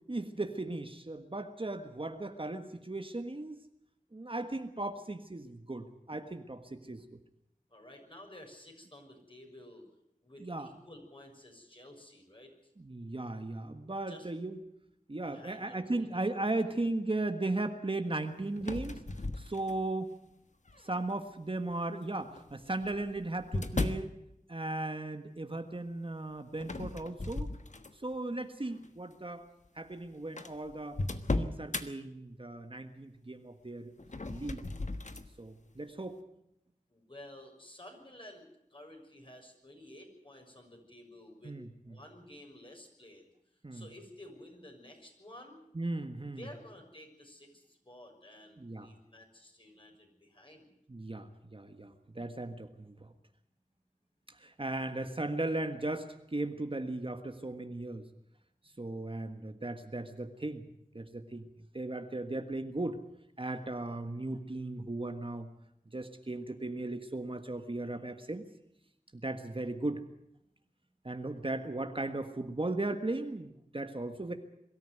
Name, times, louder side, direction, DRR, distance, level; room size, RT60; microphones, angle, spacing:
voice 1, 0.1-3.6 4.1-7.2 10.4-10.7 12.8-14.6 15.1-19.0 19.3-20.1 20.8-24.1 24.5-27.5 27.9-29.5 29.7-31.0 31.3-33.9 34.3-34.6 35.4-36.2 41.4-41.9 43.6-43.9 45.7-46.4 48.6-48.9 50.9-53.1 54.3-58.1 58.8-60.6 60.9-61.5 61.7-63.0 63.4-65.5 65.9-68.5 69.1-70.0 71.0-74.3, right 2 dB, 40° right, 7 dB, 1.5 m, -37 dB
voice 2, 7.7-9.8 10.2-12.5 14.1-14.3 15.2-16.2 36.9-43.2 43.7-45.6 46.4-50.7, left 1 dB, 35° left, 2 dB, 6.3 m, -52 dB
sound 1, 18.6-20.0 20.7-21.1 22.2-24.1 26.6-28.2 28.6-28.9 29.6-29.7 29.9-30.0 30.4-31.9 34.0-35.3, left 2 dB, 55° left, 1.4 m, -36 dB
23.0 x 13.5 x 9.4 m, 0.81 s
wide cardioid pair, 60°, 14 cm